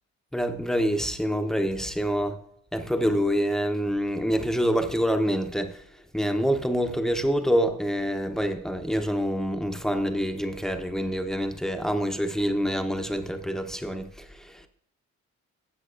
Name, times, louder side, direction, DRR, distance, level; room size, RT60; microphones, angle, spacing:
voice 1, 0.3-2.4 2.7-5.8 6.1-14.7, equal, ahead, 0.8 m, -26 dB
15.0 x 7.5 x 2.5 m
cardioid pair, 90°, 30 cm